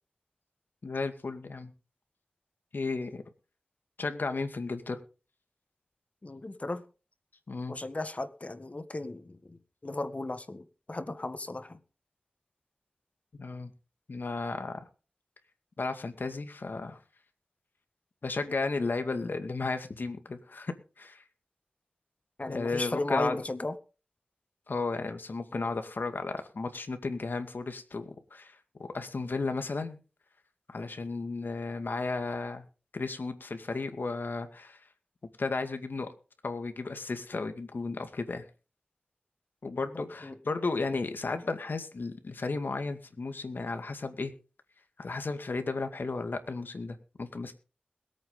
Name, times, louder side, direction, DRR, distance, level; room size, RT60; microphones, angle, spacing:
voice 1, 0.8-1.7 2.7-3.2 4.0-5.0 7.5-7.7 13.4-13.7 14.1-14.8 15.8-17.0 18.2-21.2 22.5-23.4 24.7-30.0 30.7-32.7 32.9-34.8 35.4-36.1 36.4-38.5 39.6-44.3 45.0-47.5, left 3 dB, 80° left, 8 dB, 2.2 m, -34 dB
voice 2, 6.2-6.8 7.7-11.8 22.4-23.7 40.0-40.4, left 2 dB, 45° left, 11 dB, 1.7 m, -35 dB
22.0 x 8.8 x 3.9 m, 0.34 s
wide cardioid pair, 55°, 3 cm